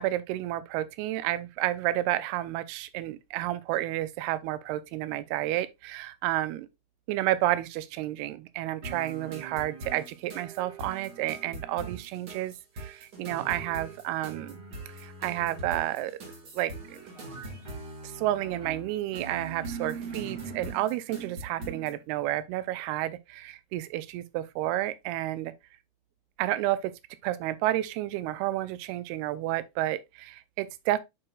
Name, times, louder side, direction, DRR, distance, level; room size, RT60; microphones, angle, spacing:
voice 1, 0.0-6.7 7.1-14.6 15.0-16.2 16.5-17.0 18.0-25.5 26.4-26.9 27.2-31.0, right 14 dB, 90° right, 2.6 m, -31 dB
sound 1, 8.8-22.0, right 3 dB, 35° right, 1.6 m, -41 dB
7.6 x 6.2 x 2.3 m
omnidirectional pair, 4.5 m